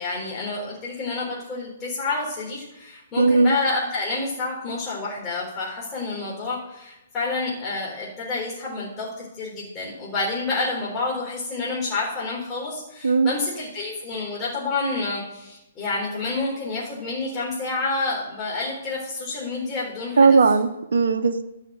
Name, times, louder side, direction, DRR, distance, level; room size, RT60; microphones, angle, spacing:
voice 1, 0.0-20.3, left 3 dB, 20° left, -6 dB, 3.8 m, -29 dB
voice 2, 3.2-3.5 13.0-13.3 20.2-21.4, right 4 dB, 65° right, 8 dB, 0.9 m, -17 dB
13.0 x 5.8 x 7.6 m, 0.92 s
figure-of-eight pair, 125°, 0 cm